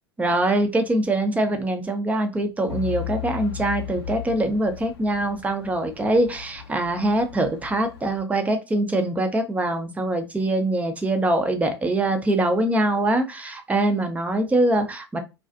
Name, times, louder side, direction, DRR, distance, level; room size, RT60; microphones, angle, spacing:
voice 1, 0.2-15.2, right 1 dB, 10° right, 0.5 m, -23 dB
Truck / Idling, 2.7-8.2, left 12 dB, 70° left, 0.5 m, -36 dB
2.4 x 2.3 x 2.5 m
figure-of-eight pair, 85°, 14 cm